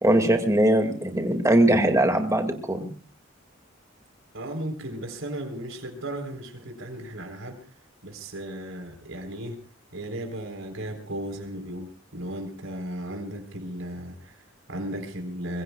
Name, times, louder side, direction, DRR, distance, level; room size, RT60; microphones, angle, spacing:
voice 1, 0.0-2.9, right 1 dB, 15° right, 5 dB, 2.1 m, -21 dB
voice 2, 4.3-7.7 8.0-9.6 9.9-15.6, right 1 dB, 85° right, 5 dB, 3.8 m, -35 dB
25.0 x 22.5 x 2.3 m, 0.39 s
head